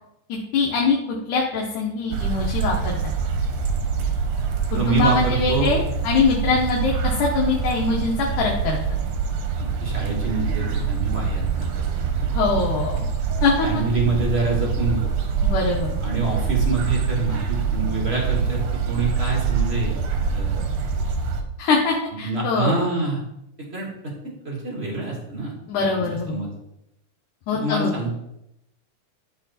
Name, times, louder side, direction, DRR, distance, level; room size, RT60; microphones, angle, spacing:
voice 1, 0.3-1.0 1.3-3.0 4.7-8.8 12.3-13.0 13.4-13.8 15.4-15.9 21.6-22.8 25.7-26.4 27.5-27.9, left 4 dB, 75° left, -2 dB, 2.5 m, -23 dB
sound 1, 2.1-21.4, right 6 dB, 65° right, 1.9 m, -25 dB
voice 2, 4.7-5.7 9.6-11.7 13.6-15.1 16.0-19.9 20.3-20.6 22.2-23.2 23.7-24.1 24.4-25.5 25.9-26.5 27.6-28.1, right 3 dB, 30° right, -1 dB, 1.2 m, -26 dB
12.5 x 4.6 x 4.2 m, 0.83 s
omnidirectional pair, 3.6 m